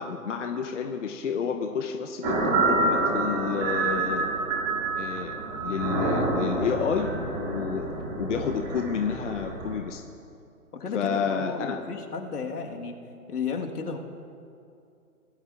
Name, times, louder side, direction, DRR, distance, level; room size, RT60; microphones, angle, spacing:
voice 1, 0.0-4.3 5.0-7.1 7.4-7.9 8.2-10.0 10.9-11.8, left 6 dB, 50° left, 4 dB, 0.8 m, -30 dB
sound 1, 2.2-9.8, right 2 dB, 30° right, 2.4 m, -28 dB
voice 2, 10.7-12.9 13.3-14.0, left 5 dB, 80° left, 2 dB, 1.8 m, -33 dB
20.5 x 12.0 x 2.5 m, 2.5 s
hypercardioid pair, 160°, 46 cm